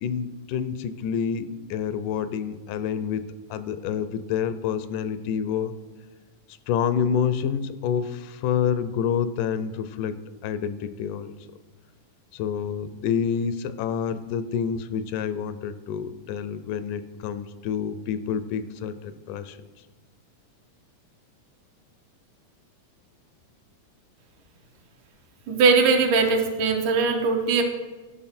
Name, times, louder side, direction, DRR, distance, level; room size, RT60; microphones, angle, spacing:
voice 1, 0.0-5.7 6.7-10.2 10.4-11.3 12.3-19.6, left 7 dB, 90° left, 12 dB, 2.1 m, -28 dB
voice 2, 25.5-27.6, right 4 dB, 85° right, 3 dB, 2.5 m, -20 dB
12.5 x 5.7 x 4.3 m, 1.3 s
omnidirectional pair, 3.6 m